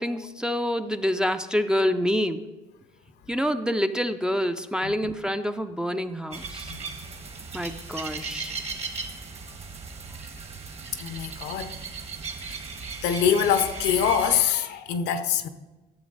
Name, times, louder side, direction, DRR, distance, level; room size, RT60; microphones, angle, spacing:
voice 1, 0.0-2.4 3.3-6.7 7.5-8.5, equal, 5° right, 0.4 m, -27 dB
sound 1, 6.3-14.4, right 4 dB, 40° right, 1.3 m, -37 dB
voice 2, 11.0-11.7 12.5-12.6 13.0-15.5, left 8 dB, 80° left, 0.7 m, -24 dB
12.5 x 7.3 x 3.9 m
cardioid pair, 110°, 17 cm